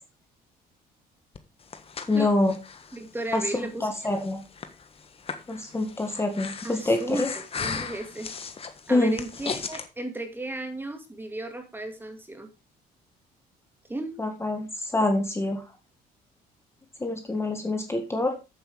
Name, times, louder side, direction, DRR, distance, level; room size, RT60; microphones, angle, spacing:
Breathing, 1.3-9.9, left 5 dB, 35° left, 1.4 m, -38 dB
voice 1, 2.1-2.6 3.3-3.4 3.8-4.4 5.5-7.3 8.9-9.2 14.2-15.6 17.0-18.4, left 2 dB, 15° left, 5 dB, 1.9 m, -25 dB
voice 2, 2.9-3.9 6.6-8.4 8.9-12.5 13.9-14.1, right 1 dB, 10° right, 6 dB, 2.3 m, -35 dB
8.0 x 8.0 x 4.8 m, 0.29 s
cardioid pair, 110°, 17 cm